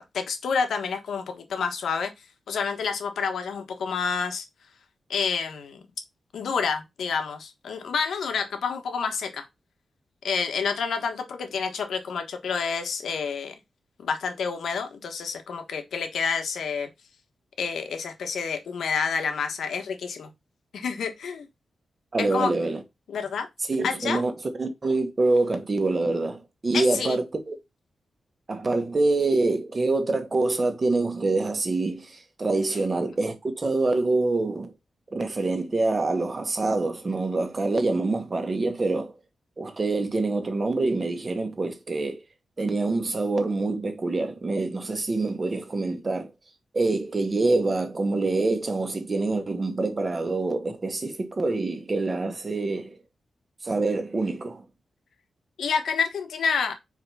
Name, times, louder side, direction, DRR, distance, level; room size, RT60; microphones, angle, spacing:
voice 1, 0.0-2.1 2.5-4.4 5.1-5.8 6.3-9.5 10.2-13.6 14.0-16.9 17.6-20.3 20.7-21.5 22.2-22.5 23.1-23.5 23.8-24.2 26.7-27.2 55.6-56.7, left 5 dB, 85° left, 1.4 m, -28 dB
voice 2, 22.1-22.8 23.7-27.6 28.5-34.7 35.1-39.1 39.6-42.2 42.6-46.3 46.7-53.0 53.6-54.6, right 3 dB, 25° right, 1.4 m, -26 dB
4.9 x 4.7 x 5.5 m
wide cardioid pair, 175°, 0 cm